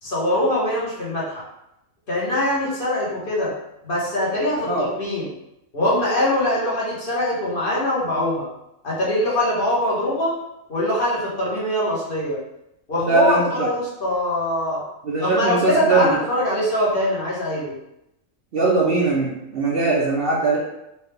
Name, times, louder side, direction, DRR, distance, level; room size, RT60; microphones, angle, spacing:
voice 1, 0.0-1.4 2.1-3.5 3.8-5.3 5.7-8.5 8.8-10.4 10.7-12.4 12.9-14.8 15.2-17.7, left 1 dB, 45° left, -8 dB, 1.2 m, -22 dB
voice 2, 13.0-13.7 15.0-16.2 18.5-20.6, right 3 dB, 55° right, -4 dB, 0.8 m, -20 dB
4.3 x 2.3 x 3.3 m, 0.86 s
omnidirectional pair, 1.4 m